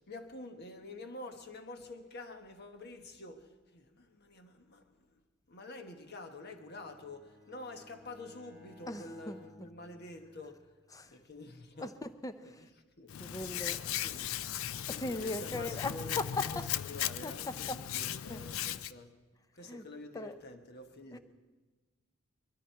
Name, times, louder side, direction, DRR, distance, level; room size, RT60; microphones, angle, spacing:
voice 1, 0.0-5.2 5.5-10.7 11.1-12.0 12.4-14.3 14.8-19.2 19.5-21.2, left 2 dB, 50° left, 1.2 m, -48 dB
Bowed string instrument, 6.1-10.7, left 2 dB, 5° right, 2.2 m, -59 dB
voice 2, 8.9-9.4 10.9-11.1 11.8-12.3 13.2-13.8 15.0-15.9 17.2-17.3 18.3-18.4 19.7-19.8 20.1-20.3 21.1-21.2, left 2 dB, 15° left, 0.6 m, -39 dB
Hands, 13.1-18.9, left 11 dB, 70° left, 0.4 m, -37 dB
21.5 x 13.0 x 4.6 m
head